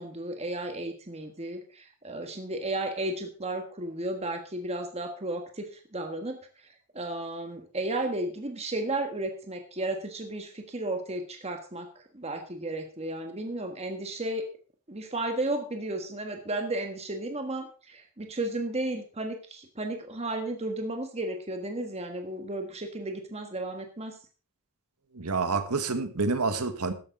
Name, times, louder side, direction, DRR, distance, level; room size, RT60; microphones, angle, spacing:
voice 1, 0.0-6.4 6.9-14.5 14.9-24.2, right 2 dB, 30° right, 1.5 m, -33 dB
voice 2, 25.1-26.9, right 4 dB, 85° right, 1.6 m, -28 dB
13.5 x 11.0 x 3.9 m
head